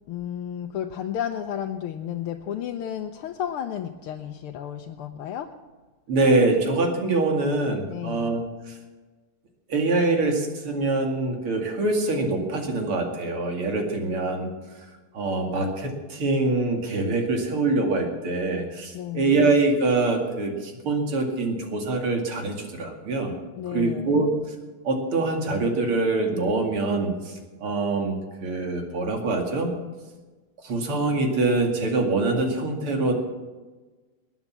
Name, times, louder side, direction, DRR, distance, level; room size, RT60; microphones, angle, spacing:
voice 1, 0.1-5.5 7.9-8.4 18.9-19.4 23.6-24.2, left 9 dB, 90° left, 4 dB, 1.7 m, -32 dB
voice 2, 6.1-8.4 8.7-8.8 9.7-14.5 15.1-23.3 23.7-24.3 24.8-29.7 30.6-33.1, right 2 dB, 85° right, 3 dB, 3.2 m, -24 dB
20.0 x 9.4 x 7.3 m, 1.3 s
omnidirectional pair, 2.3 m